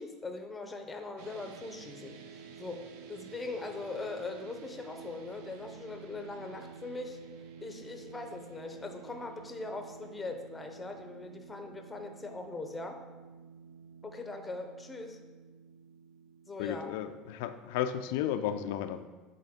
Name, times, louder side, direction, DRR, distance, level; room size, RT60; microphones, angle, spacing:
voice 1, 0.0-2.1 2.6-2.8 3.1-7.2 7.6-13.0 14.0-15.2 16.5-16.9, left 3 dB, 10° left, 5 dB, 0.6 m, -41 dB
sound 1, 1.2-17.5, right 6 dB, 80° right, 0.6 m, -51 dB
voice 2, 16.6-19.1, left 10 dB, 80° left, 9 dB, 0.3 m, -33 dB
7.5 x 4.1 x 3.7 m, 1.2 s
cardioid pair, 150°, 0 cm